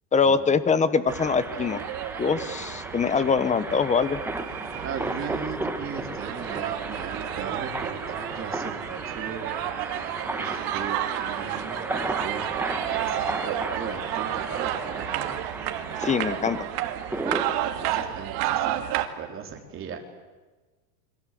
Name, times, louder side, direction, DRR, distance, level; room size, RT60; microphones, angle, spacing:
voice 1, 0.1-1.8 2.2-4.2 16.0-16.6, left 5 dB, 15° left, 14 dB, 1.1 m, -23 dB
sound 1, 1.1-17.5, right 2 dB, 5° right, 1.8 m, -35 dB
sound 2, 1.1-19.1, right 13 dB, 50° right, 2.2 m, -32 dB
voice 2, 4.8-9.6 10.4-15.3 17.6-20.0, right 6 dB, 25° right, 2 dB, 4.1 m, -37 dB
29.0 x 23.0 x 7.8 m, 1.3 s
supercardioid pair, 145°, 47 cm